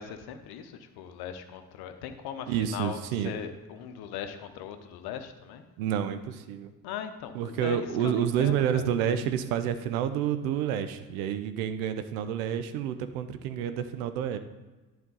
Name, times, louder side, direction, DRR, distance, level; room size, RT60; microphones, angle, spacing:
voice 1, 0.0-5.6 6.8-8.9, left 8 dB, 60° left, 8 dB, 0.8 m, -39 dB
voice 2, 2.5-3.3 5.8-6.7 7.3-14.4, right 9 dB, 70° right, 10 dB, 0.7 m, -29 dB
11.0 x 4.4 x 4.0 m, 1.2 s
figure-of-eight pair, 45°, 42 cm